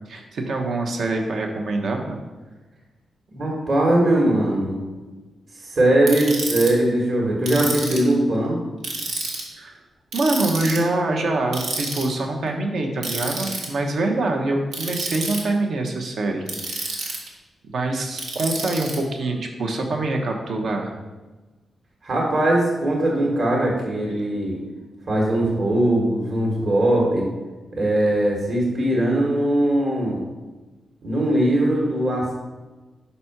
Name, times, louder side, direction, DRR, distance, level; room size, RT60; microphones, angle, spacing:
voice 1, 0.1-2.2 9.5-9.8 10.1-17.0 17.6-20.9, right 2 dB, 65° right, 2 dB, 1.0 m, -25 dB
voice 2, 3.3-4.8 5.5-8.6 22.0-24.6 25.1-27.3 27.7-30.2 31.0-32.3, right 1 dB, 45° right, -2 dB, 1.4 m, -20 dB
Ratchet pawl, 6.1-6.7 7.5-8.1 8.8-9.4 10.1-10.8 11.5-12.0 13.0-13.7 14.7-15.4 16.5-17.3 18.2-19.0, right 3 dB, 90° right, 1.5 m, -29 dB
5.5 x 4.2 x 5.8 m, 1.2 s
wide cardioid pair, 135°, 0 cm